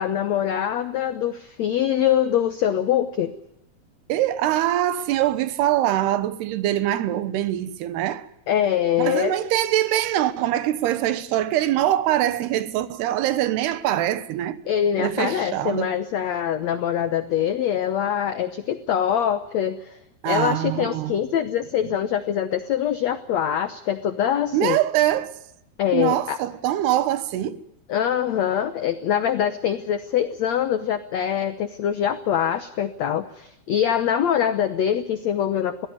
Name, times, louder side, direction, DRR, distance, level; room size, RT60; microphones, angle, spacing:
voice 1, 0.0-3.3 8.5-9.3 14.7-20.0 20.2-24.8 25.8-26.4 27.9-35.9, left 9 dB, 80° left, 1.5 m, -24 dB
voice 2, 4.1-8.3 9.0-14.6 15.0-15.9 20.2-21.2 24.5-25.4 25.9-27.6, right 13 dB, 85° right, 3.2 m, -23 dB
22.5 x 16.5 x 9.5 m
omnidirectional pair, 4.6 m